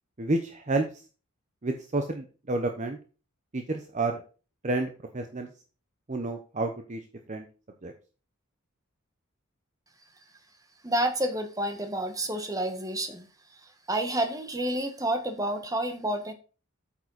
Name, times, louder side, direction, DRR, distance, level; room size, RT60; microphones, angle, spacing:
voice 1, 0.2-0.9 1.6-3.0 3.5-4.2 4.6-5.5 6.1-7.0 7.3-7.4 7.8-7.9, right 2 dB, 35° right, 4 dB, 0.8 m, -30 dB
voice 2, 10.8-13.3 13.9-16.3, right 1 dB, 15° right, 7 dB, 1.4 m, -29 dB
8.8 x 7.3 x 4.1 m, 0.36 s
head